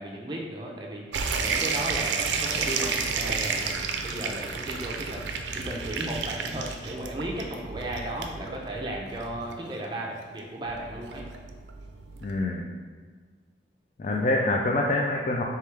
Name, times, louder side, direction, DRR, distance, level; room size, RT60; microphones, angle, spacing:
voice 1, 0.0-11.2, right 1 dB, 25° right, -1 dB, 0.5 m, -35 dB
sound 1, 1.1-12.4, right 5 dB, 85° right, 0.4 m, -31 dB
voice 2, 12.2-12.6 14.0-15.4, left 2 dB, 40° left, -1 dB, 0.3 m, -25 dB
3.4 x 3.3 x 3.2 m, 1.5 s
head